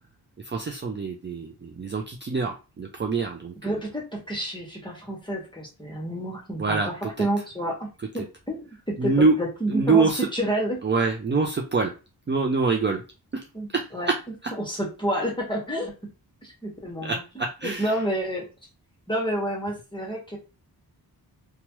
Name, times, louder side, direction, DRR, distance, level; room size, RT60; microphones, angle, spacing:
voice 1, 0.5-3.7 6.6-6.9 7.2-7.3 9.0-9.3 9.7-10.3 10.8-11.9 12.3-13.0 13.7-14.1 17.0-17.9, right 4 dB, 30° right, 2 dB, 0.4 m, -25 dB
voice 2, 3.6-7.9 8.1-10.8 13.5-14.1 14.6-15.9 16.4-18.5 19.1-20.4, right 1 dB, 10° left, -1 dB, 1.2 m, -29 dB
2.9 x 2.3 x 2.9 m, 0.30 s
wide cardioid pair, 120°, 39 cm